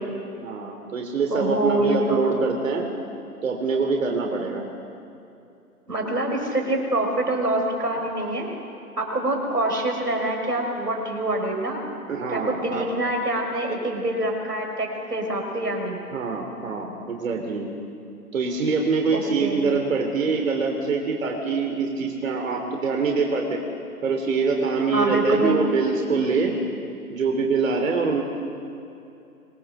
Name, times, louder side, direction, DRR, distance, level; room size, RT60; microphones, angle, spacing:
voice 1, 0.4-2.9 3.4-4.6 12.1-12.8 16.1-17.7 18.3-23.6 24.0-26.5 27.1-28.2, right 4 dB, 55° right, 3 dB, 3.3 m, -24 dB
voice 2, 1.3-2.3 5.9-8.5 9.0-11.8 12.3-16.0 19.1-19.7 24.9-25.6, right 1 dB, 90° right, 1 dB, 6.0 m, -25 dB
26.0 x 19.5 x 6.9 m, 2.7 s
figure-of-eight pair, 140°, 46 cm